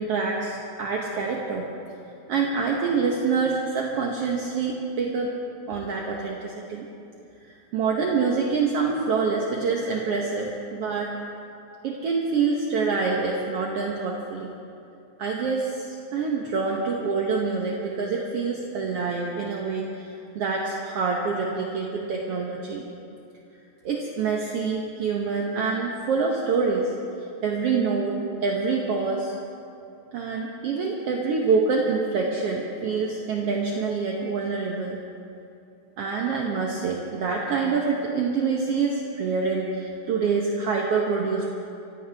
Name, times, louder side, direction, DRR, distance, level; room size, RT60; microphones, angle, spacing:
voice 1, 0.0-1.6 2.3-5.3 5.7-6.9 7.4-11.1 11.8-14.5 15.2-22.8 23.8-26.9 27.4-29.4 30.1-35.0 36.0-41.5, right 4 dB, 60° right, -1 dB, 1.9 m, -26 dB
25.0 x 16.0 x 3.5 m, 2.6 s
omnidirectional pair, 3.3 m